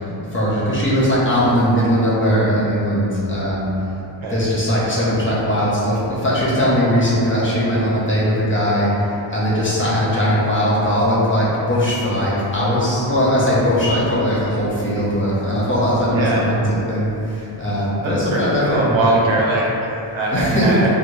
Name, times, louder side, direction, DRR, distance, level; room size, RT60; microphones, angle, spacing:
voice 1, 0.3-3.7 4.3-19.1 20.3-20.7, equal, 25° left, -8 dB, 0.5 m, -19 dB
voice 2, 16.1-16.5 18.0-20.9, right 2 dB, 80° right, -3 dB, 0.7 m, -22 dB
2.6 x 2.3 x 3.0 m, 2.8 s
wide cardioid pair, 175°, 46 cm